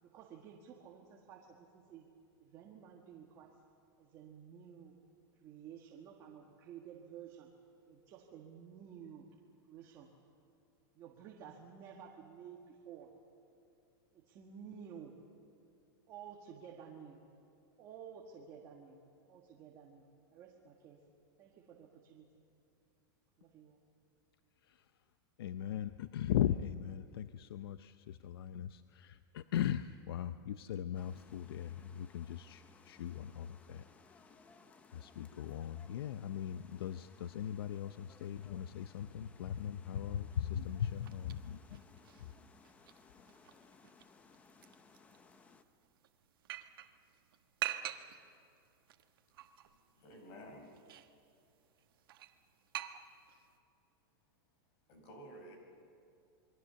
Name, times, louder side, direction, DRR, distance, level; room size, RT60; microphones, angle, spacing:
voice 1, 0.0-2.1 2.4-3.5 4.0-5.0 5.4-7.5 7.9-9.3 9.6-10.1 10.9-13.1 14.1-15.1 16.1-17.2 17.8-19.0 19.3-20.1 20.3-21.0 21.4-22.3 23.4-23.8, right 8 dB, 25° right, -1 dB, 1.6 m, -53 dB
voice 2, 25.4-33.8 34.9-41.8, left 10 dB, 85° left, 12 dB, 0.6 m, -39 dB
sound 1, 30.9-45.6, left 4 dB, 10° left, 0.7 m, -62 dB
sound 2, 40.6-53.6, right 12 dB, 75° right, 1.3 m, -48 dB
voice 3, 49.9-50.7 54.9-55.6, equal, 40° left, 3 dB, 4.9 m, -52 dB
28.0 x 22.0 x 6.9 m, 2.6 s
supercardioid pair, 175°, 12 cm